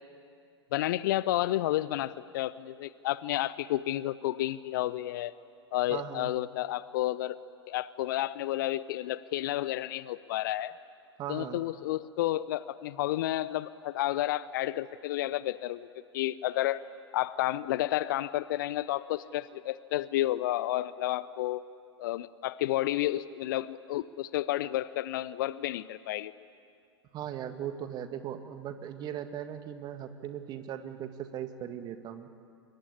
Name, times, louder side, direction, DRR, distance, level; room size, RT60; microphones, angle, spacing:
voice 1, 0.7-5.3 5.7-7.4 7.7-10.7 11.3-15.9 16.1-16.8 17.1-21.6 22.0-26.3, left 15 dB, 45° left, 18 dB, 0.7 m, -31 dB
voice 2, 5.9-6.3 11.2-11.6 27.1-32.3, right 10 dB, 30° right, 9 dB, 1.8 m, -38 dB
26.0 x 22.0 x 10.0 m, 2.4 s
figure-of-eight pair, 100°, 14 cm